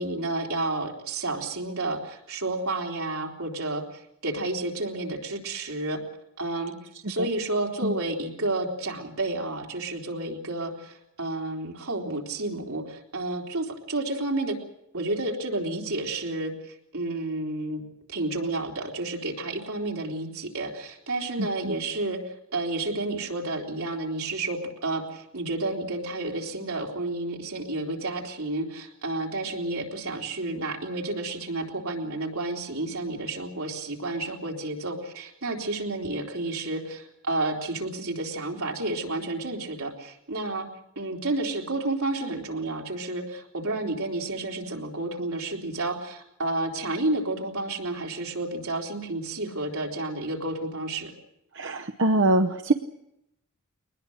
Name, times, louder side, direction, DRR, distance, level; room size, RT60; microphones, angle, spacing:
voice 1, 0.0-6.0 6.4-6.7 7.1-14.6 14.9-16.5 16.9-17.8 18.1-22.2 22.5-40.7 41.0-51.1, right 2 dB, 85° right, 1 dB, 3.7 m, -31 dB
voice 2, 51.5-52.7, right 2 dB, 60° right, 6 dB, 0.9 m, -23 dB
23.0 x 20.0 x 6.5 m, 0.81 s
head